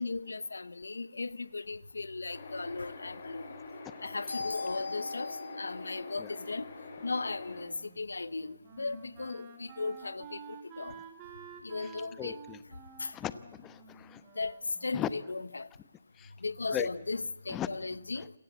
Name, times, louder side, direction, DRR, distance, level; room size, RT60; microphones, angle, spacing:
voice 1, 0.0-3.5 4.0-6.6 7.0-10.4 10.8-10.9 11.6-12.4 13.0-13.1 14.4-14.5 14.8-15.7 16.4-18.3, left 3 dB, 85° left, 0.9 m, -36 dB
sound 1, 2.3-7.7, left 3 dB, 50° left, 6.6 m, -46 dB
Wind instrument woodwind instrument, 7.6-15.4, right 6 dB, 25° right, 3.3 m, -51 dB
voice 2, 12.2-12.6 13.1-14.2 14.9-15.1 16.2-16.3 16.7-16.9 17.5-17.7, left 11 dB, 15° left, 0.9 m, -37 dB
28.5 x 18.0 x 8.4 m
hypercardioid pair, 150°, 0 cm